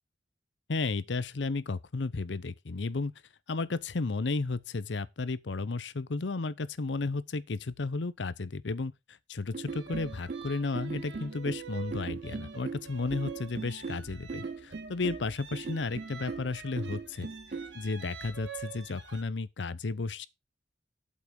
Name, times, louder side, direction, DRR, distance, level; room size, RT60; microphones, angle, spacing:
voice 1, 0.7-3.1 3.5-8.9 9.3-17.3 17.7-20.3, left 3 dB, 80° left, 0.7 m, -33 dB
sound 1, 9.5-17.8, right 4 dB, 50° right, 0.5 m, -39 dB
sound 2, 9.7-19.2, right 6 dB, 85° right, 1.7 m, -47 dB
8.4 x 7.3 x 4.6 m
head